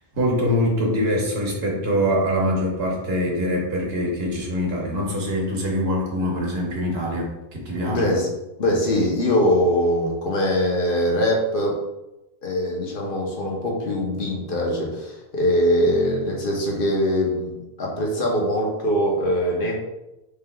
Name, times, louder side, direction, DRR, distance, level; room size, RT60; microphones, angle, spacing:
voice 1, 0.1-8.0, equal, 75° right, -2 dB, 1.2 m, -24 dB
voice 2, 7.8-8.3 8.6-11.8 12.4-19.7, equal, 60° left, -1 dB, 1.0 m, -22 dB
4.5 x 3.4 x 2.2 m, 0.96 s
omnidirectional pair, 1.0 m